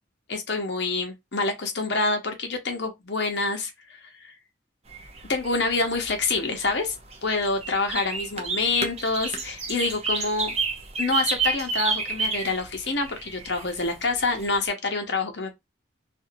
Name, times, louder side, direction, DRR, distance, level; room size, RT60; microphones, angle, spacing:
voice 1, 0.3-4.3 5.3-7.0 7.2-10.5 11.0-15.5, left 3 dB, 60° left, 0.8 m, -27 dB
sound 1, 4.9-14.6, right 4 dB, 35° right, 0.6 m, -31 dB
2.9 x 2.6 x 2.5 m
head